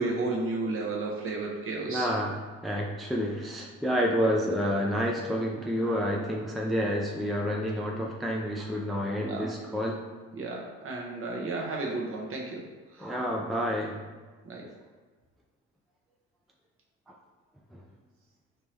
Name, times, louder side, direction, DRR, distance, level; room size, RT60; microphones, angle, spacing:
voice 1, 0.0-2.1 9.2-9.4 10.3-12.6 12.9-13.1 14.4-14.6, right 3 dB, 45° right, -1 dB, 1.0 m, -32 dB
voice 2, 1.9-10.1 13.0-14.0 14.6-14.7 17.7-17.8, equal, ahead, -1 dB, 0.4 m, -29 dB
3.6 x 2.9 x 3.2 m, 1.4 s
supercardioid pair, 70°, 30 cm